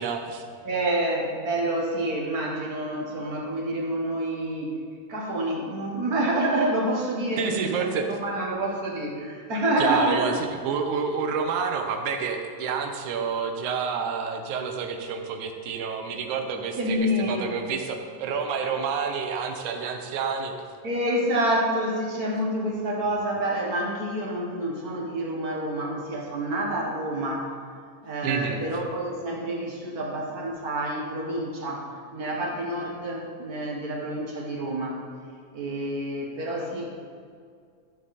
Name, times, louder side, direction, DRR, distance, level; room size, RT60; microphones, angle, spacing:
voice 1, 0.0-0.5 7.4-8.1 9.8-10.4 10.6-20.6 28.2-28.6, right 6 dB, 80° right, 5 dB, 2.3 m, -29 dB
voice 2, 0.6-4.7 5.1-10.3 16.8-17.6 20.8-27.5 28.0-35.0 35.5-36.9, right 1 dB, 45° right, -2 dB, 1.3 m, -28 dB
13.0 x 7.6 x 4.2 m, 2.2 s
omnidirectional pair, 3.4 m